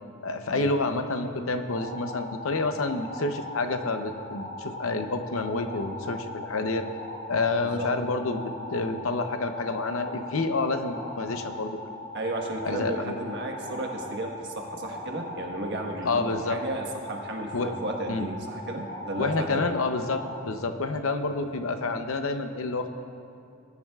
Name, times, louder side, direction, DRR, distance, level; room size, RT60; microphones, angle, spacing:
voice 1, 0.2-6.9 7.3-11.8 12.6-13.2 16.0-16.6 17.5-17.7 18.1-18.3 19.2-22.9, left 3 dB, 75° left, 7 dB, 0.7 m, -28 dB
sound 1, 1.7-20.4, left 1 dB, 40° left, 1.0 m, -40 dB
voice 2, 7.6-7.9 12.1-19.8 20.5-20.6, right 2 dB, 55° right, 1 dB, 1.4 m, -34 dB
20.0 x 10.5 x 2.4 m, 2.5 s
head